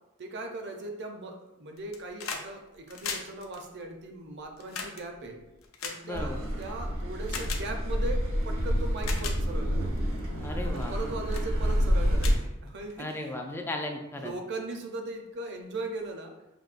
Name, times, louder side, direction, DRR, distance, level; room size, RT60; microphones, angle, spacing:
voice 1, 0.2-5.4 5.8-9.9 10.7-13.1 14.1-16.3, right 2 dB, 55° right, 3 dB, 0.6 m, -38 dB
sound 1, 1.8-2.5 2.8-6.6 7.3-7.6 8.4-8.5 8.9-9.4 10.0-10.2 10.8-11.0 11.3-11.5 11.9-12.0 12.2-13.1 14.3-14.4, left 5 dB, 75° left, 0.5 m, -38 dB
voice 2, 6.0-6.4 10.4-11.0 13.0-14.3, left 2 dB, 10° left, 2 dB, 0.3 m, -35 dB
Car passing by / Accelerating revving vroom, 6.1-12.3, equal, 90° right, 0.8 m, -28 dB
5.2 x 2.6 x 2.4 m, 0.95 s
head